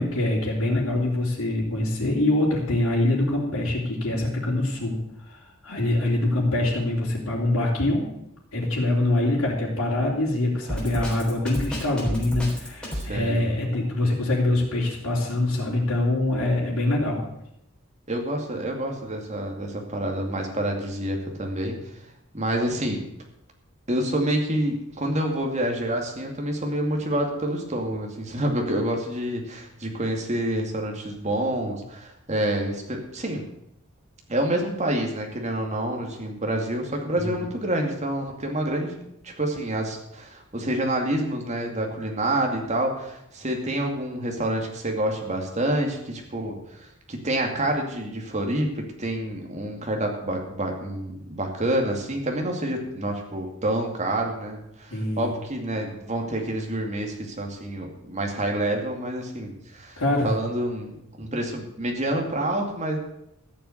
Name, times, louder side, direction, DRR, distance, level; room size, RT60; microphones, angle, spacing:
voice 1, 0.0-5.0 5.3-8.1 8.5-17.2 37.1-37.5 54.9-55.3 60.0-60.3, left 1 dB, 85° left, -6 dB, 3.3 m, -24 dB
Drum kit, 10.7-13.1, equal, 5° left, 3.8 m, -31 dB
voice 2, 12.9-13.5 18.1-21.8 22.3-23.0 23.9-33.5 34.3-63.0, right 1 dB, 35° right, 2 dB, 2.5 m, -28 dB
14.5 x 7.1 x 8.1 m, 0.81 s
head